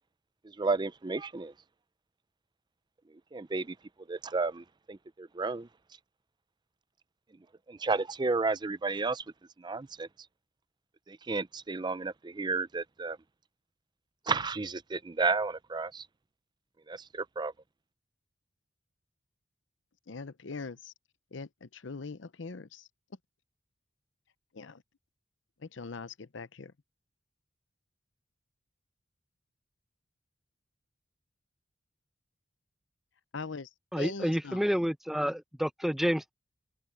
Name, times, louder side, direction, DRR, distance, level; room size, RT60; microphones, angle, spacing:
voice 1, 0.4-1.5 3.3-3.8 4.1-5.7 7.7-9.2 9.6-10.1 11.1-13.2 14.3-16.1 16.9-17.5, right 4 dB, 25° right, 0.5 m, -32 dB
voice 2, 20.1-20.9 21.3-22.8 24.6-24.8 25.6-26.7 33.3-33.7 34.0-34.6, left 4 dB, 70° left, 0.7 m, -41 dB
voice 3, 33.9-36.3, equal, ahead, 1.0 m, -29 dB
head